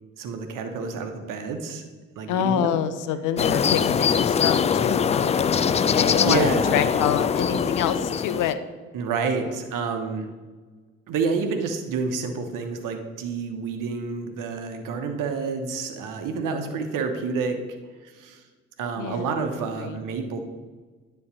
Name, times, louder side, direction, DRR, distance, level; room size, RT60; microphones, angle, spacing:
voice 1, 0.2-1.8 2.2-2.8 6.2-6.8 8.9-10.3 11.1-17.6 18.0-18.4 18.8-20.4, right 5 dB, 60° right, 6 dB, 1.2 m, -29 dB
voice 2, 2.3-8.6 16.5-16.8 19.0-19.3 19.8-20.0, left 9 dB, 55° left, 11 dB, 0.7 m, -27 dB
sound 1, 3.4-8.5, left 7 dB, 20° left, 0.3 m, -22 dB
9.7 x 4.5 x 6.2 m, 1.4 s
figure-of-eight pair, 40°, 37 cm